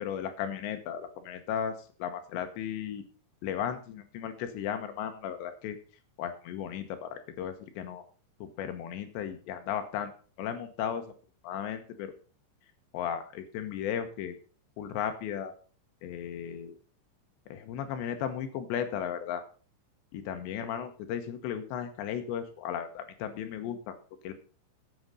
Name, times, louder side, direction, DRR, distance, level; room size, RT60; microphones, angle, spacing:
voice 1, 0.0-3.0 3.4-5.8 6.2-8.0 8.4-10.1 10.4-11.1 11.4-12.1 12.9-14.4 14.8-15.5 16.0-16.7 17.5-19.4 20.1-24.0 24.2-24.3, left 9 dB, 70° left, 8 dB, 3.0 m, -35 dB
9.6 x 8.7 x 5.4 m, 0.39 s
omnidirectional pair, 5.8 m